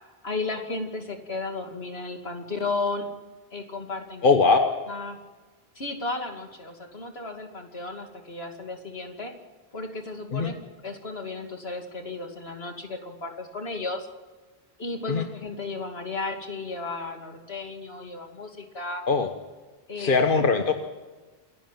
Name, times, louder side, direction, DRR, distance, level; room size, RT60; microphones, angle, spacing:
voice 1, 0.2-3.1 3.5-4.2 4.9-5.2 5.7-9.3 9.7-10.6 10.8-14.1 14.8-19.0 19.9-20.2, left 3 dB, 75° left, 4 dB, 2.8 m, -34 dB
voice 2, 4.2-4.7 10.3-10.5 15.1-15.3 19.1-19.3 20.0-20.7, left 4 dB, 55° left, 6 dB, 1.3 m, -21 dB
28.5 x 11.0 x 9.2 m, 1.3 s
omnidirectional pair, 1.1 m